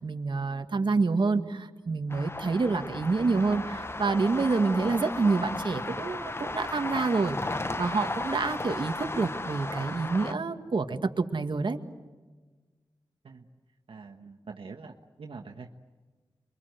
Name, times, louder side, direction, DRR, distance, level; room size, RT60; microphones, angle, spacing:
voice 1, 0.0-11.8, right 4 dB, 65° right, 6 dB, 1.9 m, -28 dB
sound 1, 2.1-10.3, left 2 dB, 30° left, 1.0 m, -35 dB
voice 2, 13.9-15.8, right 4 dB, 85° right, 4 dB, 1.4 m, -45 dB
28.0 x 24.0 x 8.1 m, 1.3 s
wide cardioid pair, 65°, 9 cm